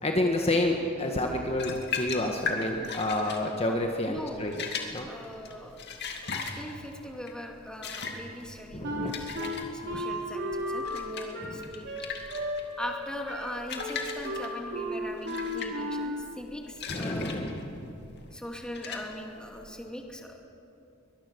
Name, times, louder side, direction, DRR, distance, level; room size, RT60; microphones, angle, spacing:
voice 1, 0.0-4.6 4.9-5.1 8.7-9.1 9.9-10.0 11.4-11.6 16.9-17.9, left 1 dB, 30° left, 2 dB, 1.5 m, -29 dB
sound 1, 1.5-19.7, left 5 dB, 55° left, 2.4 m, -39 dB
voice 2, 4.0-4.5 5.1-5.8 6.6-11.9 12.8-17.5 18.3-20.4, left 1 dB, 5° left, 1 dB, 2.4 m, -40 dB
Wind instrument woodwind instrument, 8.8-16.3, equal, 60° right, 3.9 m, -34 dB
23.0 x 20.5 x 6.9 m, 2.8 s
head